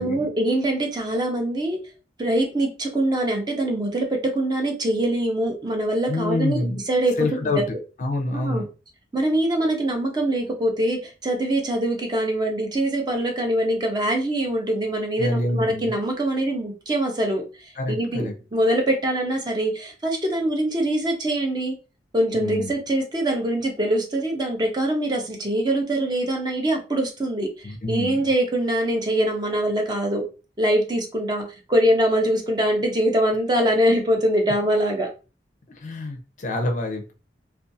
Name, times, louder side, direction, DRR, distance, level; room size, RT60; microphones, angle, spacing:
voice 1, 0.0-1.8 2.2-6.6 6.9-7.6 8.3-8.6 9.1-17.4 17.9-21.7 22.1-30.2 30.6-35.1, right 1 dB, 25° right, 2 dB, 0.5 m, -23 dB
voice 2, 6.1-6.8 7.2-7.6 8.0-8.7 15.2-15.9 17.8-18.3 22.3-22.7 27.6-28.3 35.8-37.1, left 2 dB, 40° left, 4 dB, 0.4 m, -26 dB
2.5 x 2.3 x 2.6 m, 0.32 s
head